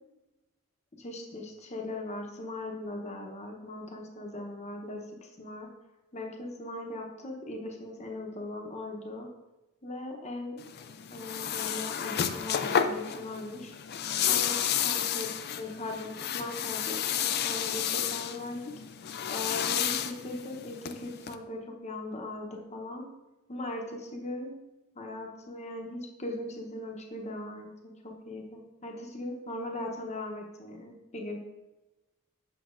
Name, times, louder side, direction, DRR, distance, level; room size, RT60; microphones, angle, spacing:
voice 1, 1.0-5.7 6.1-9.3 9.8-10.6 11.1-13.7 14.3-15.3 15.6-18.7 19.3-23.1 23.5-24.5 25.0-31.6, left 2 dB, 30° left, 2 dB, 0.8 m, -39 dB
sound 1, 10.6-21.3, left 9 dB, 50° left, 0.4 m, -31 dB
8.1 x 5.8 x 2.5 m, 1.0 s
head